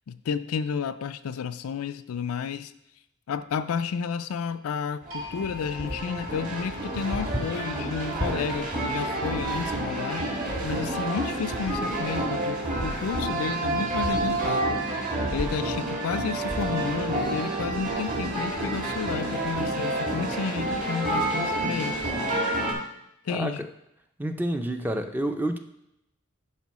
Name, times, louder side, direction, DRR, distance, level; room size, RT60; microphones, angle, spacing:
voice 1, 0.1-2.7 3.3-10.3 10.6-22.0 23.2-23.7, left 6 dB, 75° left, 12 dB, 0.4 m, -31 dB
sound 1, 5.0-22.7, right 1 dB, 40° right, 1.8 m, -29 dB
sound 2, 5.1-11.1, left 4 dB, 55° right, 2.3 m, -46 dB
voice 2, 23.3-23.7 24.2-25.6, right 1 dB, 10° right, 7 dB, 0.5 m, -29 dB
10.5 x 4.4 x 4.1 m, 0.81 s
head